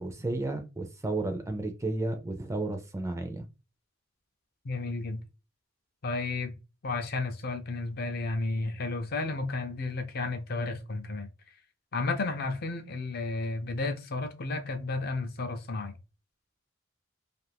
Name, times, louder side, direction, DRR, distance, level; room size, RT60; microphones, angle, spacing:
voice 1, 0.0-3.5, right 2 dB, 15° right, 0.4 m, -32 dB
voice 2, 4.6-5.2 6.0-6.5 6.8-11.3 11.9-16.0, left 3 dB, 50° left, 0.5 m, -32 dB
2.5 x 2.4 x 3.3 m
head